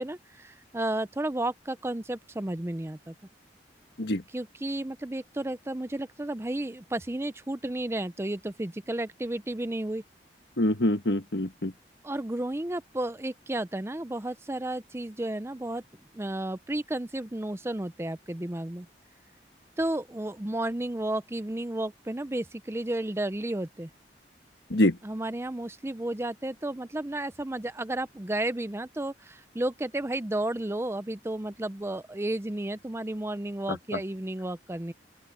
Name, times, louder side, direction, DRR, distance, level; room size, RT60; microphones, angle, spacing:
voice 1, 0.0-3.1 4.3-10.0 12.0-15.8 16.1-18.9 19.8-23.9 25.0-34.9, right 1 dB, 15° right, 0.6 m, -32 dB
voice 2, 10.6-11.7 24.7-25.0 33.7-34.0, left 1 dB, 65° left, 1.5 m, -25 dB
open air
head